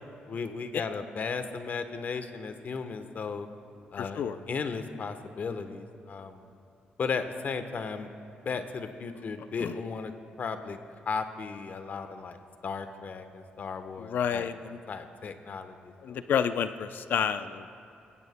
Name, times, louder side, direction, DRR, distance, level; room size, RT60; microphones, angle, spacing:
voice 1, 0.3-3.5 3.9-6.4 7.0-8.1 8.4-10.1 10.4-10.8 11.1-12.4 12.6-14.5 14.9-16.2, left 5 dB, 50° left, 8 dB, 1.0 m, -35 dB
voice 2, 4.0-4.4 9.6-9.7 14.0-14.8 16.0-17.6, left 8 dB, 65° left, 11 dB, 0.5 m, -30 dB
22.5 x 16.0 x 2.2 m, 2.8 s
cardioid pair, 75°, 3 cm